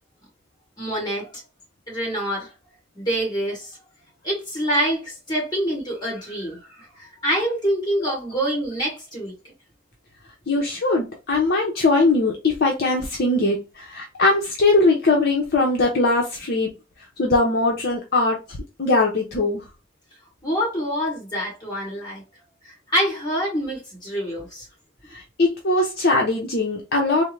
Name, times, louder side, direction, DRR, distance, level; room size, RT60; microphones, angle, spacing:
voice 1, 0.8-1.3 1.9-2.5 2.9-3.7 4.2-9.3 20.4-22.2 22.9-24.7, equal, 20° left, 2.0 m, -26 dB
voice 2, 10.5-16.7 17.2-19.6 25.1-27.2, left 2 dB, 55° left, 0.7 m, -21 dB
3.5 x 2.1 x 3.2 m
head